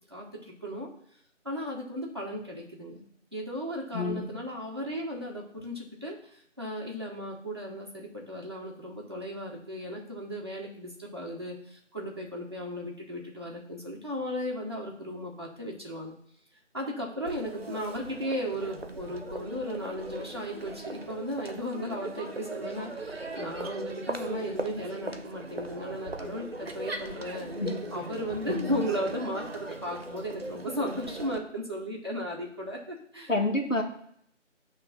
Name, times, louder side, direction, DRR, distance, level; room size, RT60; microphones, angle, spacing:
voice 1, 0.1-0.9 1.4-3.0 3.3-16.1 16.7-27.5 27.9-33.3, equal, 20° right, -3 dB, 1.0 m, -35 dB
voice 2, 3.9-4.3 27.6-27.8 28.5-28.8 33.3-33.8, left 2 dB, 85° left, 2 dB, 1.6 m, -28 dB
Crowd, 17.3-31.4, right 2 dB, 55° right, 0.9 m, -39 dB
6.8 x 3.2 x 5.4 m, 0.68 s
figure-of-eight pair, 165°, 37 cm